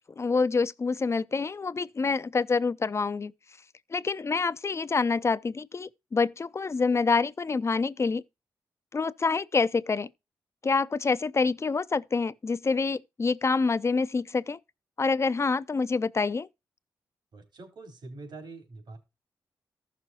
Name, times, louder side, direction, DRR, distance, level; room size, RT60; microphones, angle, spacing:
voice 1, 0.2-3.3 3.9-8.2 8.9-10.1 10.6-14.6 15.0-16.5, left 4 dB, 35° left, 0.5 m, -27 dB
voice 2, 17.3-19.0, right 3 dB, 75° right, 3.6 m, -44 dB
15.0 x 6.2 x 2.8 m
cardioid pair, 80°, 8 cm